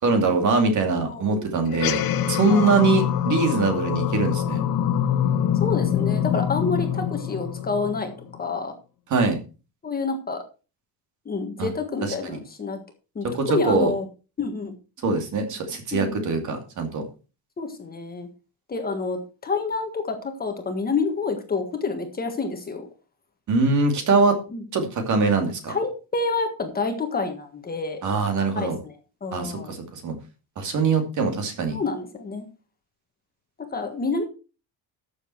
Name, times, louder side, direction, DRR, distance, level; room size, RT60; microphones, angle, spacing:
voice 1, 0.0-4.6 9.1-9.4 11.6-11.7 12.0-12.4 13.3-13.9 15.0-17.0 23.5-24.4 24.7-25.8 28.0-28.8 29.3-30.1 30.6-31.8, right 3 dB, 45° right, 5 dB, 2.6 m, -23 dB
voice 2, 1.1-1.5 2.5-2.8 5.6-8.1 8.4-8.7 9.8-10.4 11.2-12.8 13.1-14.1 14.4-14.7 15.9-16.2 17.6-18.3 18.7-22.9 24.5-24.6 25.7-28.0 28.4-29.0 29.2-29.7 31.7-32.4 33.7-34.2, left 4 dB, 20° left, 5 dB, 1.5 m, -28 dB
sound 1, 1.7-8.4, left 10 dB, 55° left, 1.0 m, -25 dB
13.0 x 7.2 x 4.5 m, 0.33 s
cardioid pair, 180°, 42 cm